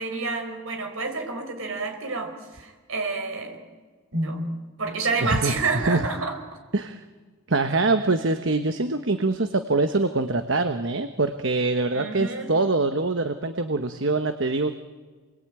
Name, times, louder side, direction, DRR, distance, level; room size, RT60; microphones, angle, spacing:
voice 1, 0.0-3.6 4.1-4.5 4.8-6.4 11.9-12.5, right 3 dB, 75° right, 5 dB, 4.9 m, -29 dB
voice 2, 5.2-6.0 6.7-7.0 7.5-14.8, right 3 dB, 60° right, 8 dB, 1.1 m, -24 dB
28.5 x 22.0 x 9.0 m, 1.4 s
head